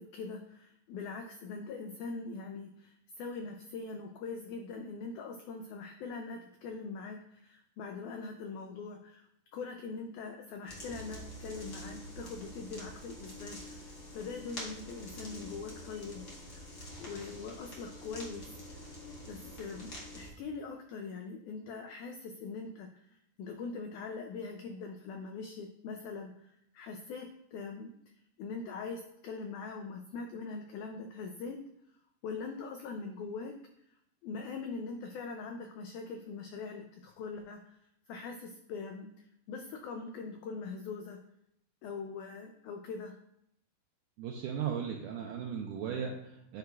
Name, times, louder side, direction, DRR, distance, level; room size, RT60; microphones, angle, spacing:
voice 1, 0.0-7.2 7.4-9.2 9.5-16.2 16.5-16.7 17.0-18.5 19.3-22.9 23.4-26.3 26.7-27.9 28.4-31.6 32.2-33.5 34.2-37.8 38.1-39.1 39.5-41.2 41.8-43.1, left 4 dB, 85° left, 4 dB, 1.7 m, -42 dB
sound 1, 10.7-20.3, left 1 dB, 65° left, 0.9 m, -46 dB
voice 2, 44.2-46.6, right 7 dB, 85° right, 2 dB, 1.8 m, -37 dB
9.3 x 4.8 x 2.3 m, 0.75 s
omnidirectional pair, 4.1 m